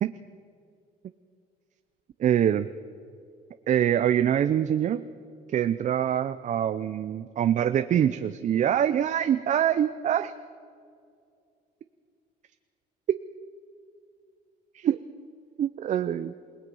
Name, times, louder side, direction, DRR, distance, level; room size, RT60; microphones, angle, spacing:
voice 1, 2.2-2.7 3.7-5.0 5.5-10.3 13.1-13.2 14.7-15.0 15.6-16.3, right 10 dB, 45° right, 11 dB, 0.6 m, -24 dB
28.0 x 18.5 x 5.5 m, 2.4 s
cardioid pair, 110°, 17 cm